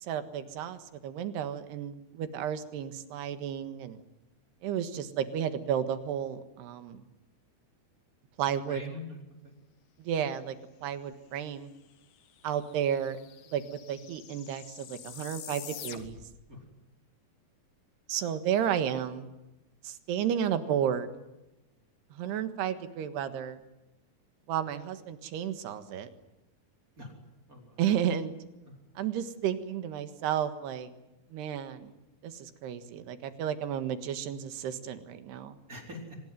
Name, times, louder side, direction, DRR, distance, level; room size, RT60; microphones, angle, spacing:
voice 1, 0.0-4.0 4.6-7.0 8.4-8.8 10.0-10.6 10.8-11.7 12.4-13.2 13.5-16.2 18.1-19.3 19.8-21.1 22.1-23.6 24.5-26.1 27.8-28.3 29.0-30.9 31.3-31.9 32.2-35.6, right 9 dB, 85° right, 9 dB, 3.7 m, -32 dB
voice 2, 8.7-9.5 16.5-16.7 27.0-27.2 27.5-27.8 28.6-28.8 35.7-36.2, left 1 dB, 20° right, 2 dB, 4.5 m, -44 dB
sound 1, 11.9-12.0 12.2-16.4, left 10 dB, 75° left, 3.7 m, -46 dB
24.5 x 20.0 x 9.4 m, 0.97 s
omnidirectional pair, 4.6 m